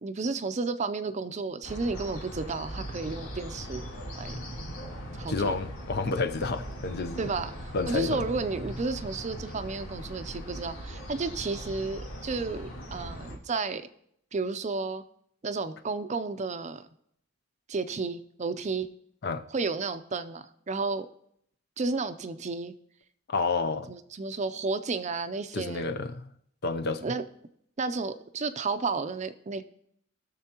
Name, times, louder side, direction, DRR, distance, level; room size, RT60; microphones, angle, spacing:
voice 1, 0.0-3.8 4.2-4.4 5.2-5.6 7.2-13.9 14.3-15.0 15.4-16.9 17.7-18.9 19.5-21.1 21.8-22.7 23.9-25.9 27.0-27.2 27.8-29.6, right 4 dB, 35° right, 11 dB, 0.5 m, -32 dB
sound 1, 1.6-13.4, equal, 90° left, 2.4 m, -40 dB
voice 2, 5.3-7.3 7.7-8.3 19.2-19.4 23.3-23.9 25.5-26.3 26.6-27.0, left 4 dB, 55° left, 9 dB, 0.6 m, -30 dB
20.0 x 6.8 x 2.9 m, 0.70 s
head